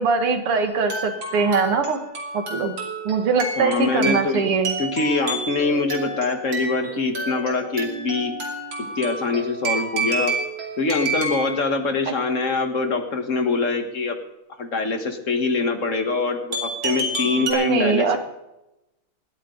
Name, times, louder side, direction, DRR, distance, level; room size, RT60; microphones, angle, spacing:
voice 1, 0.0-2.0 2.3-2.8 3.0-4.7 17.4-18.2, right 5 dB, 85° right, 7 dB, 2.5 m, -22 dB
sound 1, 0.7-11.6 16.5-17.5, right 2 dB, 55° right, 3.4 m, -30 dB
voice 2, 3.6-4.4 4.8-8.3 8.9-10.3 10.8-14.2 14.6-18.2, left 3 dB, 40° left, 6 dB, 1.8 m, -24 dB
19.0 x 13.5 x 4.0 m, 0.92 s
omnidirectional pair, 2.4 m